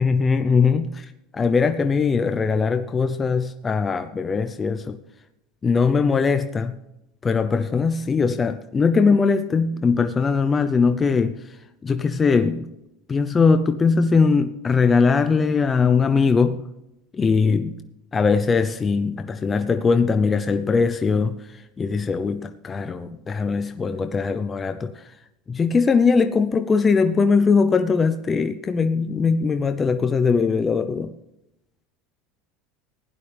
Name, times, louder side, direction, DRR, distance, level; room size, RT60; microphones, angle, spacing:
voice 1, 0.0-5.0 5.6-6.8 7.2-12.7 13.1-16.6 17.1-17.8 18.1-25.1 25.5-31.1, left 5 dB, 20° left, 0.5 m, -21 dB
16.0 x 10.5 x 3.4 m
supercardioid pair, 125°, 0 cm